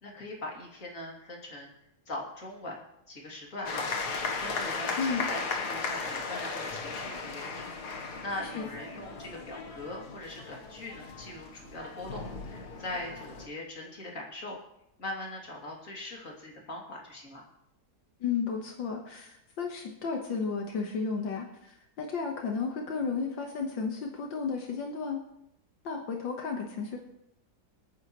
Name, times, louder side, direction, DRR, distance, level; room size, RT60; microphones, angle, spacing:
voice 1, 0.0-1.7 2.1-2.8 3.1-14.6 15.0-17.5, left 1 dB, 45° left, -1 dB, 3.1 m, -41 dB
sound 1, 3.7-13.5, left 4 dB, 60° left, 1.8 m, -36 dB
voice 2, 18.2-25.2 25.8-27.0, left 5 dB, 80° left, 1 dB, 2.1 m, -33 dB
27.0 x 9.2 x 3.1 m, 0.82 s
omnidirectional pair, 2.0 m